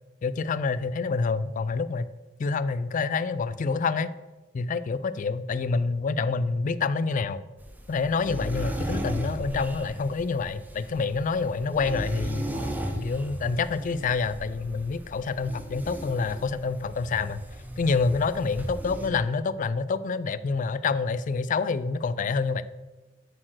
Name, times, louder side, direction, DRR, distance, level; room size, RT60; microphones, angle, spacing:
voice 1, 0.2-2.1 2.4-4.1 4.5-7.5 7.9-12.5 12.9-17.4 17.8-22.6, left 4 dB, 40° left, 15 dB, 0.3 m, -27 dB
sound 1, 7.6-19.1, equal, 10° right, 0.7 m, -36 dB
7.5 x 4.3 x 6.2 m, 1.1 s
head